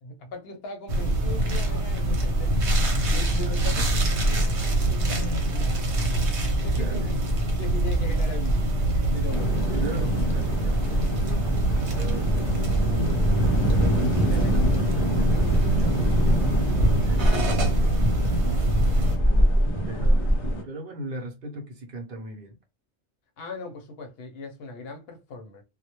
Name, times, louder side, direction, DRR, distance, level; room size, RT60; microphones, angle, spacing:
voice 1, 0.0-2.6 3.1-4.5 4.9-5.7 6.0-7.2 7.5-8.7 9.1-9.6 17.2-17.5 23.4-25.6, left 2 dB, 70° left, 0.8 m, -39 dB
sound 1, 0.9-19.2, right 1 dB, 80° right, 1.0 m, -24 dB
voice 2, 6.8-7.1 9.7-12.7 13.7-16.4 17.0-19.2 19.8-20.4 20.6-22.6, right 2 dB, 60° right, 0.7 m, -39 dB
sound 2, 9.3-20.6, equal, 45° left, 0.4 m, -26 dB
2.1 x 2.0 x 2.8 m
omnidirectional pair, 1.1 m